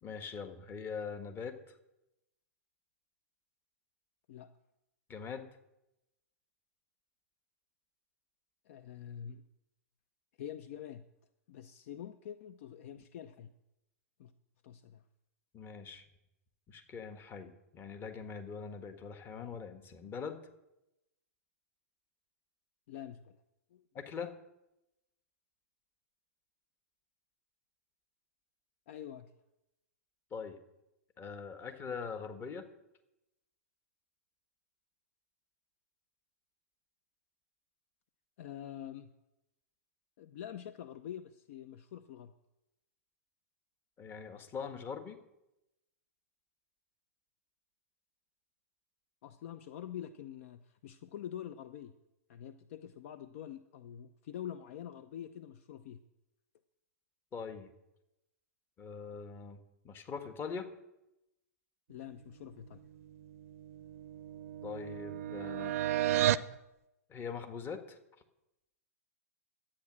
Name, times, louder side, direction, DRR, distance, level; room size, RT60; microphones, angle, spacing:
voice 1, 0.0-1.5 5.1-5.5 15.5-16.0 16.7-20.4 23.9-24.3 30.3-30.6 31.2-32.6 44.0-45.2 57.3-57.7 58.8-60.7 64.6-65.8 67.1-68.0, left 6 dB, 25° left, 7 dB, 1.5 m, -42 dB
voice 2, 8.7-9.4 10.4-11.0 11.5-13.5 14.2-14.3 14.6-15.0 22.9-23.4 23.7-23.8 28.9-29.3 38.4-39.1 40.2-42.3 49.2-51.9 52.3-56.0 61.9-62.8, left 10 dB, 55° left, 12 dB, 0.7 m, -46 dB
sound 1, 63.3-66.5, right 13 dB, 60° right, 0.5 m, -33 dB
12.0 x 8.8 x 6.3 m, 0.91 s
hypercardioid pair, 110°, 9 cm